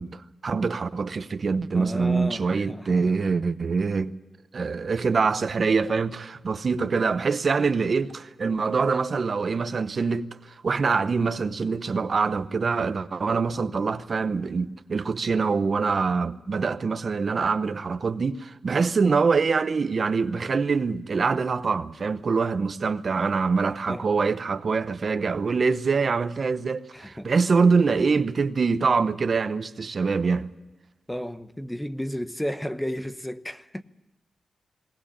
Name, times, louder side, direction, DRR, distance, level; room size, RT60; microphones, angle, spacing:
voice 1, 0.0-4.1 4.5-30.5, right 4 dB, 50° right, 0.8 m, -24 dB
voice 2, 1.7-3.1 23.9-24.0 26.9-27.3 31.1-33.8, equal, 5° left, 0.9 m, -33 dB
20.0 x 19.0 x 8.7 m
cardioid pair, 85°, 0 cm